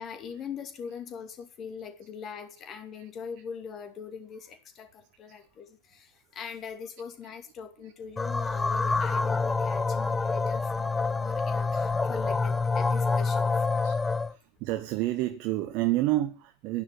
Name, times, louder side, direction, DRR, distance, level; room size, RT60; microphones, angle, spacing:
voice 1, 0.0-13.7, left 6 dB, 30° left, 2.4 m, -42 dB
sound 1, 8.2-14.3, left 4 dB, 10° left, 0.5 m, -27 dB
voice 2, 14.3-16.8, right 16 dB, 40° right, 1.1 m, -30 dB
11.0 x 11.0 x 6.0 m
figure-of-eight pair, 90°, 0 cm